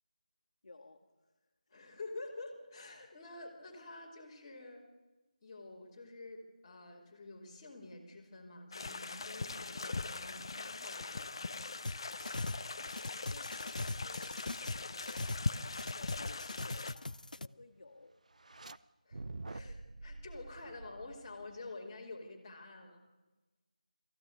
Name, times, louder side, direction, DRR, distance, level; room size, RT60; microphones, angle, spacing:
voice 1, 0.6-1.3 1.7-1.8 12.9-15.3 15.9-18.1, left 2 dB, 50° left, 2 dB, 2.0 m, -57 dB
voice 2, 1.7-4.8 5.4-11.4 19.0-19.2 19.5-23.0, left 2 dB, 15° left, -5 dB, 3.2 m, -49 dB
sound 1, 8.7-17.0, left 3 dB, 35° left, 0.7 m, -41 dB
sound 2, 11.8-12.6 12.9-15.5 15.7-17.5, left 2 dB, 75° left, 0.6 m, -40 dB
sound 3, 18.3-18.8 19.1-21.7, right 2 dB, 60° right, 0.7 m, -47 dB
21.0 x 15.5 x 9.5 m, 1.2 s
figure-of-eight pair, 170°, 4 cm